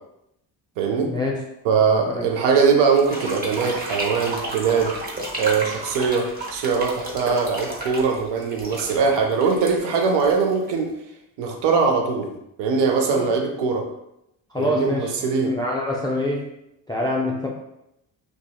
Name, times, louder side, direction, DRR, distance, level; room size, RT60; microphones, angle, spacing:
voice 1, 0.8-1.1 1.6-4.9 5.4-10.9 11.4-12.3 12.6-13.9 14.6-15.5, right 5 dB, 60° right, 3 dB, 0.6 m, -21 dB
sound 1, 2.9-10.9, right 1 dB, 20° right, 0.8 m, -32 dB
voice 2, 14.5-16.5 16.9-17.5, left 1 dB, 10° left, -2 dB, 0.3 m, -25 dB
2.6 x 2.3 x 2.2 m, 0.82 s
hypercardioid pair, 50°, 48 cm